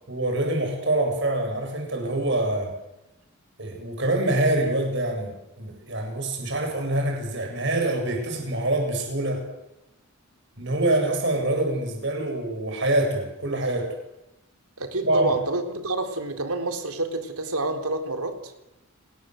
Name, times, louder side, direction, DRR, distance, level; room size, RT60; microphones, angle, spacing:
voice 1, 0.1-2.7 3.6-9.4 10.6-13.9 15.0-15.3, right 1 dB, 55° right, 3 dB, 7.7 m, -25 dB
voice 2, 14.8-18.5, right 2 dB, 85° right, 6 dB, 3.9 m, -28 dB
29.5 x 20.5 x 7.9 m, 0.93 s
head